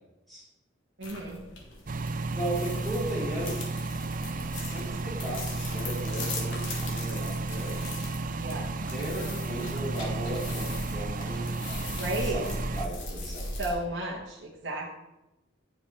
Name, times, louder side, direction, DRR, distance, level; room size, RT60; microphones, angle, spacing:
sound 1, 1.0-13.7, left 2 dB, 75° left, 2.8 m, -39 dB
voice 1, 1.0-1.4 8.4-8.7 11.9-12.4 13.5-14.9, right 1 dB, 60° right, -3 dB, 1.5 m, -33 dB
sound 2, 1.9-12.9, right 3 dB, 45° right, 0.5 m, -33 dB
voice 2, 2.4-3.6 4.5-7.8 8.9-11.9 12.3-12.4 12.8-13.5, right 1 dB, ahead, -8 dB, 3.9 m, -36 dB
9.6 x 7.3 x 5.7 m, 0.95 s
head